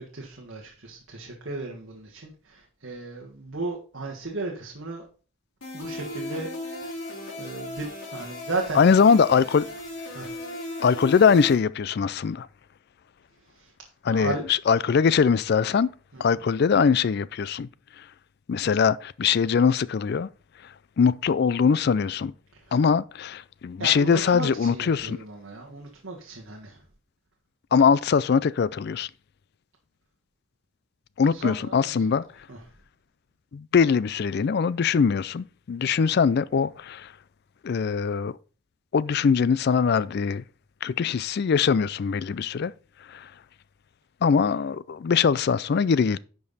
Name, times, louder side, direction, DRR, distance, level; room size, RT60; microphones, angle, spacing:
voice 1, 0.0-5.0 5.7-6.5 6.8-6.9 7.4-8.9 10.1-10.3 13.5-13.7 14.1-14.4 16.1-16.2 23.8-26.8 31.2-32.0 32.5-32.6, right 3 dB, 65° right, 1.5 m, -35 dB
sound 1, 5.6-11.5, left 1 dB, 80° left, 3.1 m, -36 dB
voice 2, 8.7-9.7 10.8-12.5 14.0-15.9 16.2-17.7 18.0-18.1 18.5-20.3 21.0-22.3 22.7-25.2 27.7-29.1 31.2-32.3 33.5-37.1 37.6-38.4 38.9-40.4 40.8-42.7 43.1-43.3 44.2-46.2, left 6 dB, 50° left, 0.3 m, -22 dB
10.5 x 5.3 x 4.1 m
head